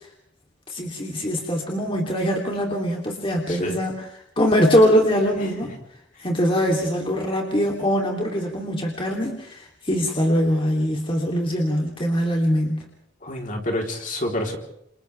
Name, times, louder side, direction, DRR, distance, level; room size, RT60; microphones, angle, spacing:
voice 1, 0.7-4.1 4.4-5.7 6.2-9.5 9.9-12.8, equal, 30° left, 0 dB, 3.3 m, -22 dB
voice 2, 13.2-14.6, left 1 dB, 45° left, 1 dB, 3.8 m, -28 dB
30.0 x 28.5 x 3.5 m, 0.74 s
head